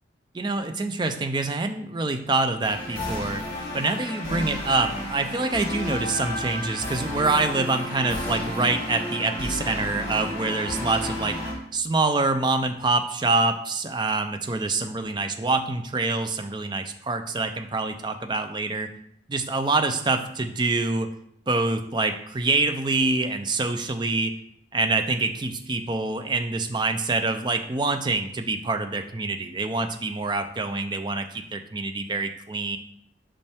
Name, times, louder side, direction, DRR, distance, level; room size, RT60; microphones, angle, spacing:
voice 1, 0.3-3.4 3.7-11.4 11.7-18.9 19.3-21.1 21.5-24.3 24.7-32.8, right 3 dB, 25° right, 7 dB, 0.4 m, -26 dB
sound 1, 2.6-11.5, left 1 dB, 25° left, 2.1 m, -32 dB
5.4 x 5.3 x 3.5 m, 0.72 s
head